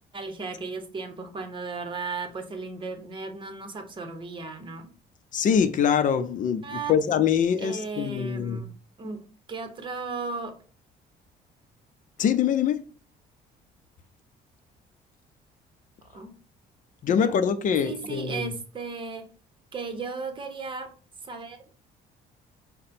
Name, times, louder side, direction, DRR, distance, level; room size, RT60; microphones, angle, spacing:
voice 1, 0.1-4.9 6.6-7.0 7.6-8.7 9.0-10.5 16.1-16.3 17.1-17.3 17.8-19.3 19.7-20.9 21.2-21.6, right 4 dB, 30° right, 1.0 m, -35 dB
voice 2, 5.3-8.6 12.2-12.8 17.0-18.5, left 7 dB, 50° left, 0.6 m, -24 dB
4.9 x 2.2 x 4.2 m
cardioid pair, 110°, 17 cm